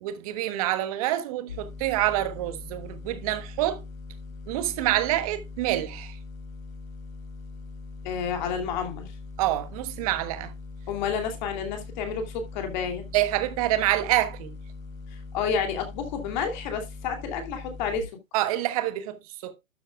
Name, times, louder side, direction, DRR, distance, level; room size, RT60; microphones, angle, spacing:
voice 1, 0.0-3.8 4.5-6.2 9.4-10.5 13.1-14.6 18.3-19.5, right 14 dB, 25° right, 1.2 m, -27 dB
sound 1, 1.5-18.0, left 3 dB, 75° left, 2.3 m, -41 dB
voice 2, 8.0-9.1 10.9-13.1 15.1-18.1, left 6 dB, 35° left, 2.8 m, -30 dB
12.5 x 8.0 x 2.4 m
hypercardioid pair, 140°, 41 cm